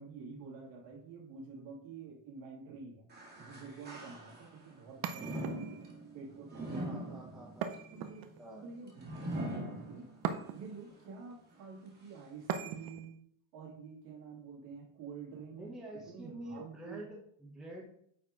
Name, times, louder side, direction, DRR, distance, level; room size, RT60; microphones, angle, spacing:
voice 1, 0.0-3.0 3.4-5.8 6.1-7.5 7.9-8.3 8.6-10.1 10.5-13.2 13.5-15.7 15.9-17.1, right 5 dB, 65° right, -1 dB, 2.5 m, -48 dB
sound 1, 3.1-4.7 5.1-10.4 10.9-11.0 11.9-12.0, right 1 dB, 20° right, 1.7 m, -42 dB
sound 2, 5.0-6.0 7.6-8.6 10.2-10.9 12.5-13.1, right 8 dB, 50° right, 0.7 m, -39 dB
voice 2, 6.7-7.7 8.4-8.6 15.6-17.8, right 1 dB, ahead, -3 dB, 1.0 m, -47 dB
9.4 x 4.4 x 3.8 m, 0.66 s
cardioid pair, 180°, 49 cm